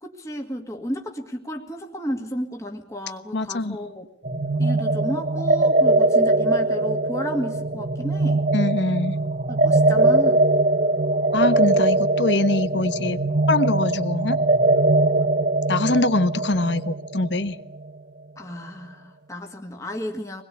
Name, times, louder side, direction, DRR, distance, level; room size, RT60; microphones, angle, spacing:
voice 1, 0.0-4.1 4.6-8.5 9.5-10.5 18.4-20.4, equal, 15° left, 2.0 m, -32 dB
voice 2, 3.3-3.8 8.5-9.1 11.3-13.2 13.5-14.4 15.7-17.6, left 2 dB, 70° left, 1.3 m, -23 dB
sound 1, 4.2-17.8, right 2 dB, 50° right, 0.9 m, -21 dB
25.5 x 21.0 x 8.5 m
head